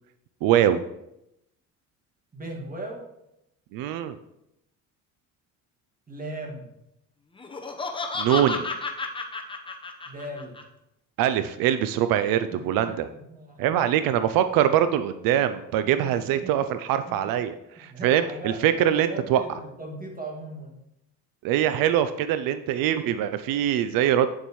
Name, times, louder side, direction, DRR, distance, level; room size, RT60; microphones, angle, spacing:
voice 1, 0.4-0.8 3.7-4.2 8.2-8.7 11.2-13.1 13.6-19.4 21.4-24.3, right 10 dB, 85° right, 11 dB, 0.5 m, -23 dB
voice 2, 2.3-3.0 6.1-6.7 10.1-10.6 12.5-13.8 15.8-16.5 17.0-17.3 17.8-18.6 18.9-20.8, right 1 dB, 25° right, 0 dB, 2.0 m, -39 dB
Laughter, 7.4-10.6, left 3 dB, 15° left, 0.8 m, -32 dB
8.6 x 7.0 x 3.1 m, 0.85 s
cardioid pair, 110°, 33 cm